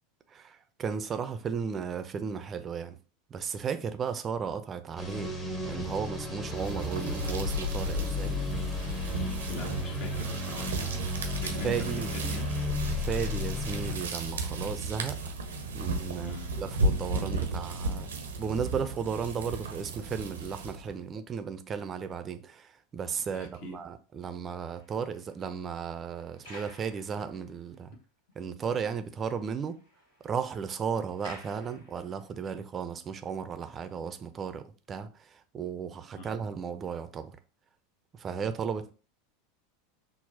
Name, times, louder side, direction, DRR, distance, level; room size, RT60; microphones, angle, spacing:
voice 1, 0.3-3.0 3.3-5.3 5.6-8.4 11.6-12.1 12.9-15.2 15.7-18.1 18.4-27.9 28.4-29.8 30.2-37.4 38.1-38.9, right 6 dB, 30° right, 0.4 m, -35 dB
sound 1, 5.0-13.9, left 3 dB, 25° left, 0.9 m, -34 dB
sound 2, 6.5-21.0, right 2 dB, 75° right, 0.6 m, -34 dB
voice 2, 9.5-11.1 11.4-12.5 16.2-16.5 23.3-23.8 36.1-36.3, left 3 dB, 55° left, 0.9 m, -42 dB
sound 3, 24.4-27.8 28.3-28.4 28.8-28.9 29.2-32.4, equal, 70° left, 1.6 m, -53 dB
5.9 x 2.0 x 2.7 m
figure-of-eight pair, 85°, 0 cm